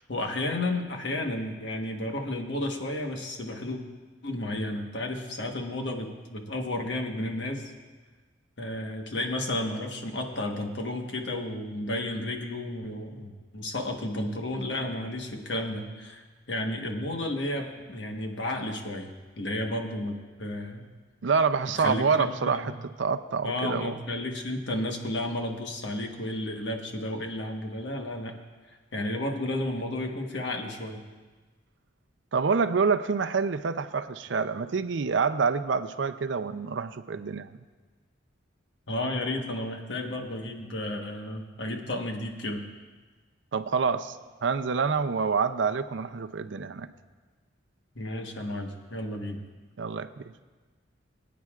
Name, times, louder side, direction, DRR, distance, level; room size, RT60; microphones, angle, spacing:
voice 1, 0.1-3.8 4.2-7.7 8.6-20.9 21.7-22.7 23.4-28.3 28.9-31.0 38.9-42.6 47.9-49.4, left 1 dB, 70° left, 3 dB, 1.3 m, -32 dB
voice 2, 21.2-23.9 32.3-37.5 43.5-46.9 49.8-50.3, right 5 dB, 75° right, 10 dB, 0.5 m, -27 dB
22.0 x 9.3 x 2.4 m, 1.3 s
head